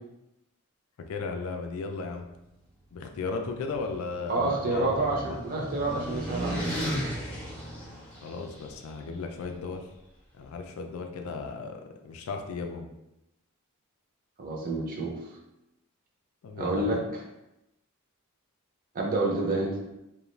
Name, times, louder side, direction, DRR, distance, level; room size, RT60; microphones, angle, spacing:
voice 1, 1.0-2.3 2.9-5.4 8.2-9.8 10.3-12.9 16.4-17.0, left 4 dB, 70° left, 4 dB, 0.3 m, -36 dB
sound 1, 3.5-8.7, equal, 5° left, 0.6 m, -35 dB
voice 2, 4.3-6.9 14.4-15.2 16.6-17.0 18.9-19.8, right 2 dB, 40° right, -1 dB, 0.5 m, -28 dB
2.4 x 2.2 x 3.0 m, 0.90 s
head